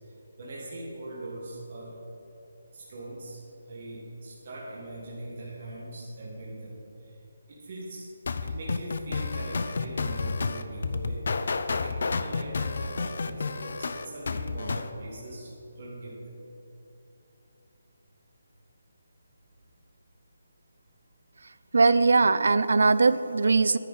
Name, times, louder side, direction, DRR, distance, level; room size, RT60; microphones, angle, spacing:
voice 1, 0.4-1.9 2.7-3.4 3.7-6.7 7.0-7.1 7.5-8.1 8.4-11.2 11.7-15.5 15.7-16.4, right 1 dB, 35° right, -5 dB, 1.5 m, -41 dB
sound 1, 8.3-14.9, left 4 dB, 50° left, 0.4 m, -30 dB
voice 2, 21.7-23.8, right 3 dB, 65° right, 14 dB, 0.3 m, -20 dB
10.0 x 9.8 x 4.0 m, 2.9 s
hypercardioid pair, 175°, 0 cm